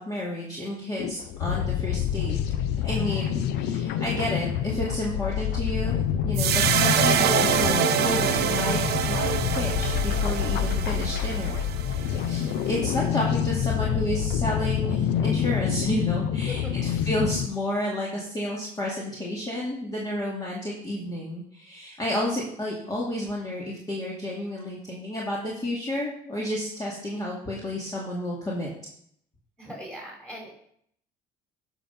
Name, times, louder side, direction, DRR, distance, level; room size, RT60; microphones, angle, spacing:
voice 1, 0.0-2.4 2.7-11.6 11.8-28.7, left 1 dB, 20° left, -4 dB, 2.4 m, -31 dB
sound 1, 1.0-17.5, left 9 dB, 80° left, 0.7 m, -27 dB
sound 2, 6.4-12.7, right 9 dB, 75° right, 1.0 m, -26 dB
voice 2, 29.6-30.5, equal, 5° left, -2 dB, 5.0 m, -40 dB
11.5 x 6.1 x 5.4 m, 0.68 s
cardioid pair, 110°, 17 cm